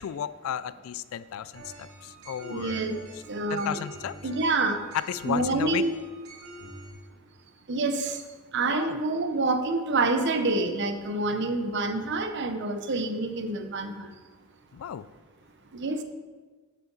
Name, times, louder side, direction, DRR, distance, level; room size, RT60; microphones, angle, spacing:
voice 1, 0.0-2.9 3.5-4.2 4.9-5.8 8.7-9.0 14.7-15.0, left 9 dB, 75° left, 17 dB, 0.3 m, -33 dB
sound 1, 1.5-6.9, right 1 dB, 85° right, 1.8 m, -46 dB
voice 2, 2.5-3.0 3.3-3.8 4.2-4.8 5.2-5.9 7.7-8.2 8.5-14.1 15.7-16.0, right 2 dB, 55° right, 8 dB, 0.7 m, -27 dB
7.8 x 7.7 x 3.9 m, 1.4 s
head